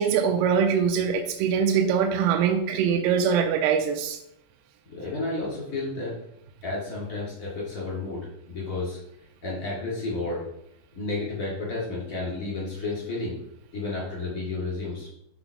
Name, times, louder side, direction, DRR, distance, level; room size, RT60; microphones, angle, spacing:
voice 1, 0.0-4.2, right 7 dB, 85° right, 4 dB, 3.4 m, -23 dB
voice 2, 4.9-6.1 6.6-9.0 9.4-10.4 10.9-13.3 13.7-15.1, left 2 dB, 40° left, -5 dB, 1.2 m, -31 dB
8.8 x 3.9 x 4.7 m, 0.75 s
omnidirectional pair, 6.0 m